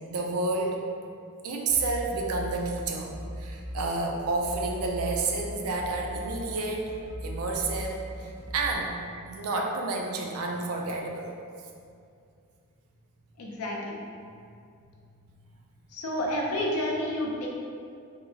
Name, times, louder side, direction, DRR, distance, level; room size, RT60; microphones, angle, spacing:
voice 1, 0.1-0.8 1.4-6.9 7.2-8.9 9.3-11.3, right 3 dB, 70° right, 1 dB, 0.4 m, -30 dB
sound 1, 1.7-8.8, equal, 10° left, 0.6 m, -39 dB
voice 2, 13.4-14.0 15.9-17.5, left 1 dB, 75° left, -2 dB, 0.5 m, -30 dB
2.8 x 2.7 x 2.7 m, 2.4 s
head